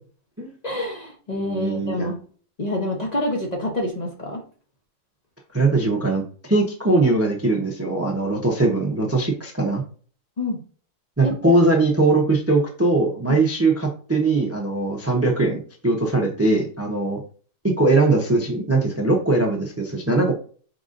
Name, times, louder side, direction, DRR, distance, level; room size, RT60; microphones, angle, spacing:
voice 1, 0.6-2.2 2.6-4.4 10.4-10.6 11.2-11.5 13.3-13.4, left 1 dB, 40° left, 0 dB, 0.8 m, -27 dB
voice 2, 1.3-2.1 5.5-9.8 11.2-17.2 17.6-20.4, right 2 dB, 15° right, 1 dB, 0.5 m, -21 dB
4.7 x 3.8 x 2.5 m, 0.42 s
omnidirectional pair, 1.4 m